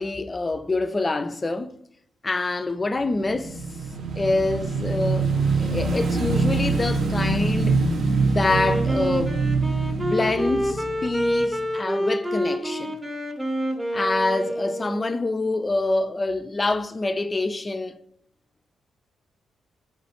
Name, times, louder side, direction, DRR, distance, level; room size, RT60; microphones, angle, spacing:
voice 1, 0.0-1.7 2.2-3.6 4.2-5.3 5.6-7.8 8.2-9.3 9.9-13.0 13.9-18.0, left 2 dB, 30° left, 0.3 m, -26 dB
Motorcycle / Engine, 3.0-11.6, right 3 dB, 65° right, 0.7 m, -24 dB
Wind instrument woodwind instrument, 8.5-15.2, equal, 10° right, 0.7 m, -27 dB
3.5 x 3.0 x 4.2 m
cardioid pair, 75°, 0 cm